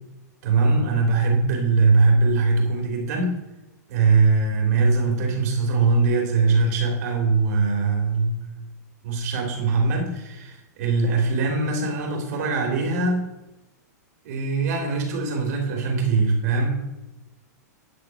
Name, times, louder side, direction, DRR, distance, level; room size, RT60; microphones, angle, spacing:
voice 1, 0.4-3.4 3.9-8.5 9.0-13.3 14.2-16.7, right 3 dB, 65° right, 0 dB, 3.2 m, -21 dB
10.5 x 5.9 x 4.8 m, 0.99 s
hypercardioid pair, 115°, 9 cm